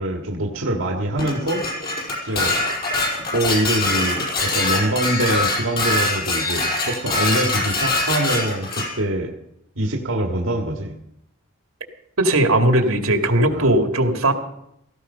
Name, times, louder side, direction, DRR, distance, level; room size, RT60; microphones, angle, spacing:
voice 1, 0.0-1.9 2.2-2.7 3.2-9.3 9.8-11.0 13.5-13.7, right 1 dB, 70° right, 2 dB, 1.7 m, -24 dB
Dishes pots and pans, 1.2-8.9, left 2 dB, 45° left, 5.9 m, -23 dB
voice 2, 12.2-14.3, right 1 dB, 90° right, 5 dB, 2.3 m, -18 dB
17.0 x 15.0 x 5.5 m, 0.79 s
head